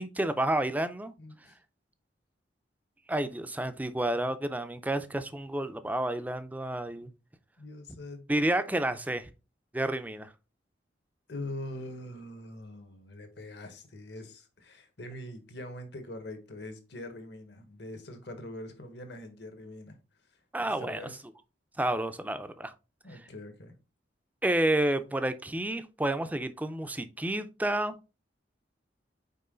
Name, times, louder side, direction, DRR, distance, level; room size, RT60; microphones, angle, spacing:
voice 1, 0.0-1.1 3.1-7.1 8.3-9.3 9.7-10.3 20.5-21.0 21.8-22.7 24.4-28.0, right 1 dB, 10° right, 0.5 m, -30 dB
voice 2, 1.2-1.6 7.6-8.7 11.3-20.0 20.6-21.2 23.0-23.7, left 1 dB, 65° left, 1.3 m, -43 dB
5.5 x 4.5 x 3.8 m
head